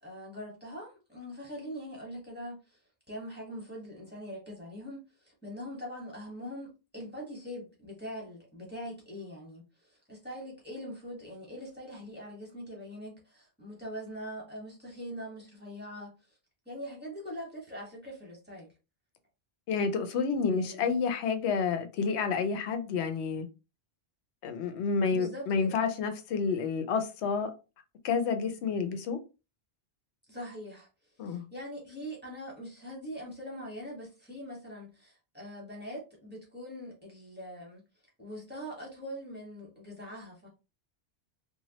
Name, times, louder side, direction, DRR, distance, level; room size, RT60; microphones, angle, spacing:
voice 1, 0.0-2.8 3.1-16.4 16.6-18.7 20.5-20.9 25.1-25.7 30.3-30.9 31.2-37.8 38.2-40.5, equal, 10° right, 1.1 m, -42 dB
voice 2, 19.7-23.5 24.4-27.5 28.0-29.2 31.2-31.4, left 5 dB, 85° left, 0.9 m, -29 dB
2.9 x 2.2 x 2.9 m
omnidirectional pair, 1.1 m